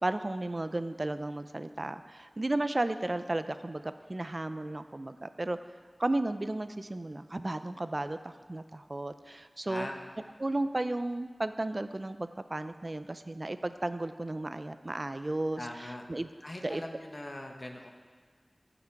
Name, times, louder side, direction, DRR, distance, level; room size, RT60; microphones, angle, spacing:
voice 1, 0.0-5.6 6.0-9.9 10.4-16.3 16.6-16.8, right 2 dB, 45° right, 11 dB, 0.5 m, -34 dB
voice 2, 15.6-16.0 16.4-17.9, left 1 dB, 45° left, 2 dB, 1.2 m, -41 dB
15.0 x 6.0 x 4.7 m, 1.5 s
wide cardioid pair, 60°, 0 cm